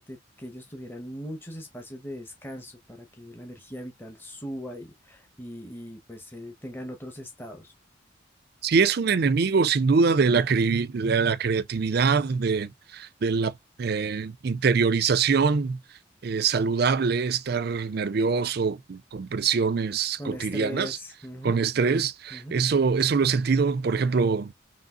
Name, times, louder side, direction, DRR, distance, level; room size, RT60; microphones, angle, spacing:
voice 1, 0.0-7.7 20.2-21.6 22.3-22.6, equal, 10° left, 1.2 m, -39 dB
voice 2, 8.6-13.5 13.8-15.8 16.2-21.0 21.4-24.5, right 5 dB, 55° right, 0.4 m, -24 dB
5.3 x 3.1 x 2.6 m
head